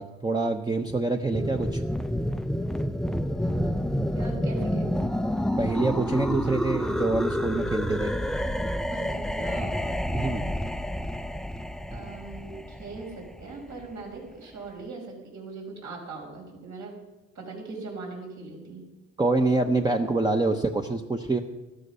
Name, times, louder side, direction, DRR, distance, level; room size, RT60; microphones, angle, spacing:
voice 1, 0.0-1.8 5.6-8.1 10.1-10.5 19.2-21.4, right 3 dB, 15° right, 4 dB, 0.8 m, -26 dB
sound 1, 1.3-14.0, equal, ahead, 0.5 m, -29 dB
voice 2, 3.4-3.7 4.1-5.0 8.9-9.8 11.9-16.9 17.4-18.8, right 3 dB, 65° right, 0 dB, 5.3 m, -40 dB
13.0 x 13.0 x 5.5 m, 1.1 s
cardioid pair, 90°, 30 cm